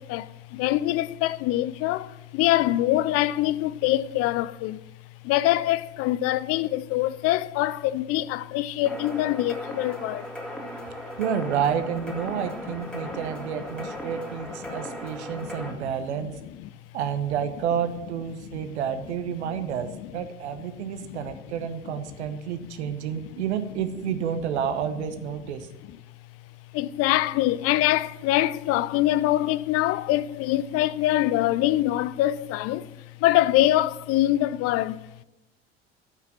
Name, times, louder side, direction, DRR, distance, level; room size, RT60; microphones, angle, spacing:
voice 1, 0.0-4.8 5.2-10.3 13.0-13.2 13.8-13.9 14.7-14.8 15.4-15.8 16.2-16.3 16.6-16.7 19.9-20.0 21.1-21.3 21.6-21.9 22.8-22.9 26.7-35.2, left 15 dB, 40° left, 0.5 m, -24 dB
sound 1, 8.9-15.7, equal, ahead, 2.0 m, -37 dB
voice 2, 11.2-16.3 16.9-25.7, right 8 dB, 65° right, 1.0 m, -30 dB
13.0 x 5.8 x 7.5 m
figure-of-eight pair, 60°, 36 cm